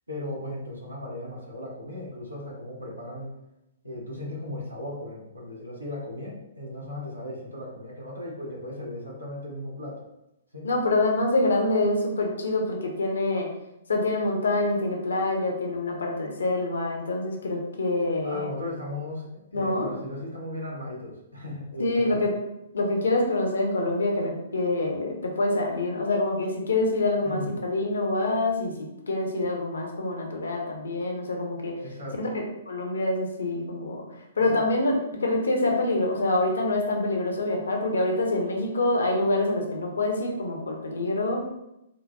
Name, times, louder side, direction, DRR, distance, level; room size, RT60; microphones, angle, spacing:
voice 1, 0.1-3.3 3.8-10.0 10.5-10.7 18.2-22.3 27.2-27.5 31.8-32.3 34.5-34.6, left 1 dB, 85° right, -4 dB, 1.0 m, -37 dB
voice 2, 10.6-13.5 13.9-18.5 19.5-19.9 21.8-22.3 22.7-28.7 29.1-31.8 32.2-34.0 34.4-41.5, left 2 dB, 65° left, 2 dB, 0.6 m, -26 dB
3.9 x 2.2 x 2.2 m, 0.87 s
figure-of-eight pair, 115°, 0 cm